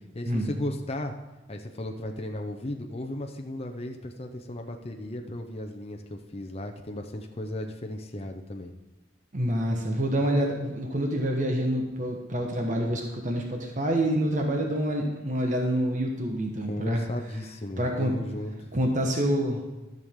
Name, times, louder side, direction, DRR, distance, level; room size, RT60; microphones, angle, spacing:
voice 1, 0.1-1.1 1.5-8.7 16.7-18.7, left 1 dB, 30° left, 3 dB, 0.7 m, -35 dB
voice 2, 9.3-17.0 17.8-18.1 18.7-19.6, right 1 dB, 40° right, 1 dB, 1.2 m, -27 dB
13.5 x 6.5 x 3.7 m, 1.1 s
head